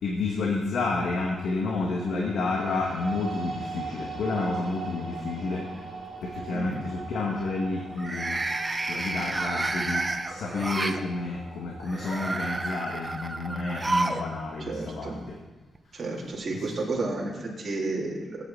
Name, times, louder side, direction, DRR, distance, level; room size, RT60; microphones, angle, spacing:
voice 1, 0.0-5.7 6.2-8.4 8.9-15.4 16.5-16.7, left 3 dB, 75° left, -1 dB, 2.0 m, -30 dB
sound 1, 1.2-13.4, right 4 dB, 5° left, 5.6 m, -41 dB
sound 2, 4.4-5.0 5.4-5.8 7.9-11.0 11.8-14.3 14.5-14.6 15.8-15.9, right 2 dB, 20° right, 0.8 m, -30 dB
voice 2, 14.7-15.2 15.9-18.4, right 3 dB, 45° right, -4 dB, 3.4 m, -31 dB
21.0 x 9.6 x 4.1 m, 1.2 s
wide cardioid pair, 135°, 0 cm